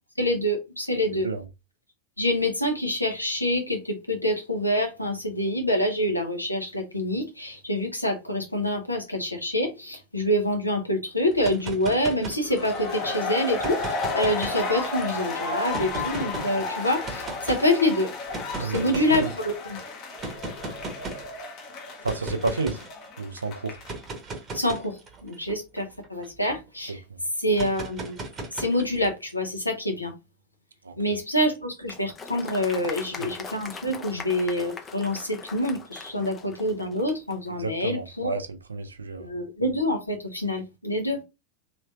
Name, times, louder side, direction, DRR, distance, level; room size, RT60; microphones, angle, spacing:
voice 1, 0.2-1.3 2.2-18.1 18.6-19.8 24.5-27.0 27.4-28.2 28.5-30.1 31.0-38.3 39.2-41.2, left 1 dB, 85° left, 0.9 m, -26 dB
voice 2, 1.1-1.4 18.5-19.3 22.0-22.8 23.2-23.8 26.9-27.2 30.8-31.2 32.8-33.3 37.6-39.3, right 3 dB, 75° right, 0.5 m, -31 dB
sound 1, 11.3-12.9 13.5-15.0 15.7-16.5 17.0-17.6 18.3-19.4 20.2-21.3 22.0-22.9 23.7-26.6 27.5-29.1, right 2 dB, 25° right, 1.0 m, -37 dB
sound 2, 12.4-24.1, left 3 dB, 40° left, 1.0 m, -33 dB
Applause, 31.9-37.4, left 5 dB, 20° left, 0.5 m, -41 dB
3.2 x 3.1 x 2.4 m
figure-of-eight pair, 90°, 0 cm